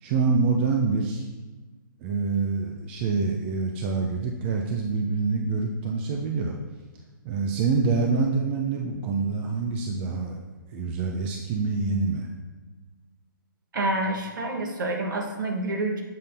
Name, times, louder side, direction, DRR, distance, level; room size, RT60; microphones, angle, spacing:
voice 1, 0.0-1.2 2.0-6.6 7.2-10.4 10.7-12.3, right 4 dB, 30° right, 1 dB, 0.6 m, -26 dB
voice 2, 13.7-16.0, right 2 dB, 65° right, 2 dB, 1.2 m, -28 dB
7.5 x 2.8 x 5.3 m, 1.3 s
hypercardioid pair, 140°, 11 cm